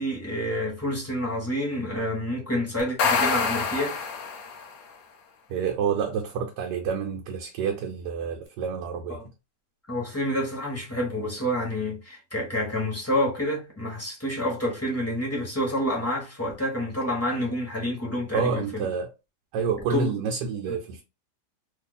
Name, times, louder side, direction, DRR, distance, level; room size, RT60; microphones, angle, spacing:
voice 1, 0.0-4.0 9.1-9.3 9.9-18.9 19.9-20.1 20.7-20.8, equal, 10° left, 1.0 m, -28 dB
sound 1, 2.8-4.8, left 5 dB, 65° left, 1.0 m, -26 dB
voice 2, 5.5-9.2 18.3-19.1 19.5-21.0, right 6 dB, 85° right, 1.2 m, -28 dB
2.7 x 2.6 x 3.9 m
omnidirectional pair, 1.8 m